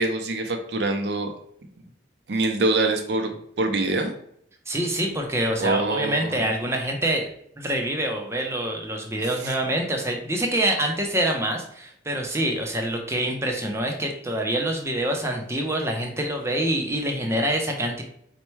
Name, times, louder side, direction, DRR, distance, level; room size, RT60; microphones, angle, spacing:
voice 1, 0.0-1.3 2.3-3.3 3.6-4.1 5.6-6.4 9.4-9.5, right 2 dB, 60° right, 4 dB, 0.5 m, -24 dB
voice 2, 4.7-7.3 7.6-18.0, right 1 dB, 15° right, 2 dB, 0.5 m, -26 dB
4.3 x 2.2 x 4.4 m, 0.70 s
head